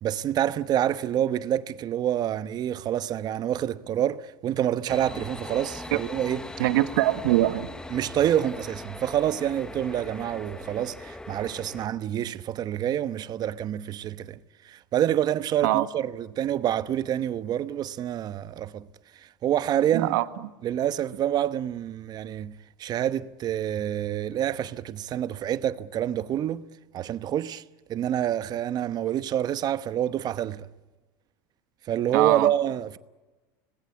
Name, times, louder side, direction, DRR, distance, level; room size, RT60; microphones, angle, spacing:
voice 1, 0.0-6.4 7.9-18.9 19.1-20.1 20.6-26.6 26.9-27.6 27.9-30.7 31.8-33.0, right 11 dB, 40° right, 1.0 m, -27 dB
sound 1, 4.9-11.9, left 2 dB, 5° left, 1.0 m, -40 dB
voice 2, 6.6-7.7 15.6-15.8 19.9-20.3 32.1-32.5, right 16 dB, 75° right, 1.5 m, -23 dB
26.0 x 20.0 x 8.3 m
supercardioid pair, 115°, 11 cm